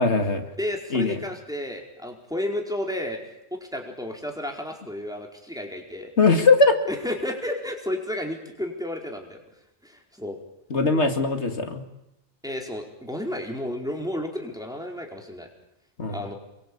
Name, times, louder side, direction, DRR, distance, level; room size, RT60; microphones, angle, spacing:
voice 1, 0.0-0.5 0.9-1.2 6.2-6.8 10.7-11.8 16.0-16.2, left 3 dB, 80° left, 6 dB, 2.6 m, -20 dB
voice 2, 0.6-3.2 3.5-6.1 6.9-9.4 9.8-10.4 12.4-15.5 16.1-16.3, left 1 dB, 5° right, 1 dB, 4.5 m, -32 dB
29.0 x 23.0 x 8.8 m, 0.86 s
omnidirectional pair, 1.1 m